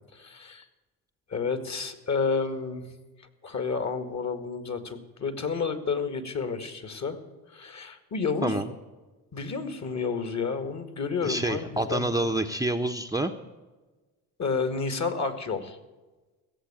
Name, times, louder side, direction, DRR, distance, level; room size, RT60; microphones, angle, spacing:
voice 1, 0.1-0.6 1.3-2.9 3.4-7.2 7.5-8.6 9.3-12.1 14.4-15.8, left 5 dB, 40° left, 10 dB, 2.1 m, -30 dB
voice 2, 11.2-13.3, right 1 dB, 10° right, 6 dB, 0.9 m, -27 dB
16.5 x 7.2 x 8.9 m, 1.2 s
hypercardioid pair, 65°, 45 cm